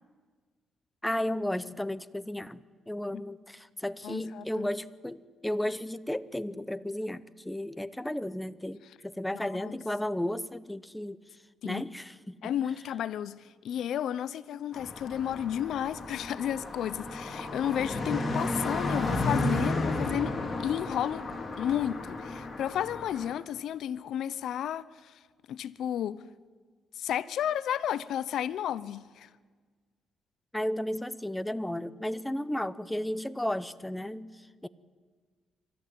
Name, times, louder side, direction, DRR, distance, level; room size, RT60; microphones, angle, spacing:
voice 1, 1.0-11.2 11.6-12.5 30.5-34.7, left 1 dB, 5° left, 0.8 m, -34 dB
voice 2, 4.0-4.7 9.3-9.8 11.6-11.8 12.4-20.3 20.6-21.3 21.6-25.1 25.5-26.2 27.0-29.3, left 10 dB, 75° left, 0.7 m, -32 dB
Car passing by, 14.7-23.3, left 2 dB, 30° left, 4.1 m, -33 dB
25.0 x 14.0 x 9.4 m
cardioid pair, 90°, 0 cm